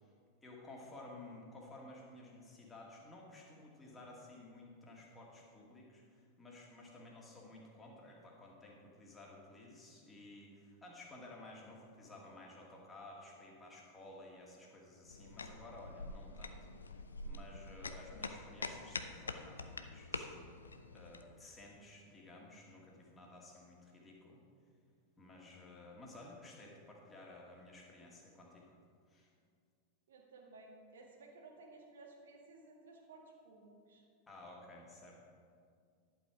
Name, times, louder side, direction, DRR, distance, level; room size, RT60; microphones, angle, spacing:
voice 1, 0.4-16.5 17.2-20.5 20.9-24.4 25.2-28.7 29.1-29.3 34.3-35.2, left 2 dB, 15° left, -2 dB, 2.3 m, -54 dB
sound 1, 15.1-21.2, left 3 dB, 75° left, 0.6 m, -46 dB
voice 2, 30.1-34.0, right 3 dB, 65° right, 1 dB, 1.8 m, -57 dB
11.0 x 7.8 x 4.9 m, 2.2 s
figure-of-eight pair, 90°, 0 cm